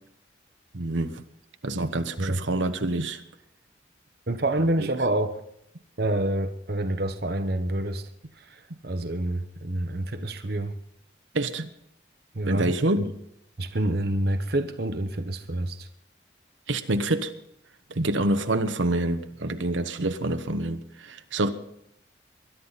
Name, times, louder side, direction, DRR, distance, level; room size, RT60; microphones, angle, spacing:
voice 1, 0.7-1.2 1.6-3.2 4.8-4.9 11.3-11.7 12.4-13.1 16.7-17.3 17.9-21.5, right 2 dB, 80° right, 1.2 m, -27 dB
voice 2, 4.3-5.4 6.0-8.1 8.4-10.8 12.3-13.1 13.6-15.9, right 1 dB, 55° right, 1.0 m, -28 dB
21.5 x 11.5 x 4.2 m
head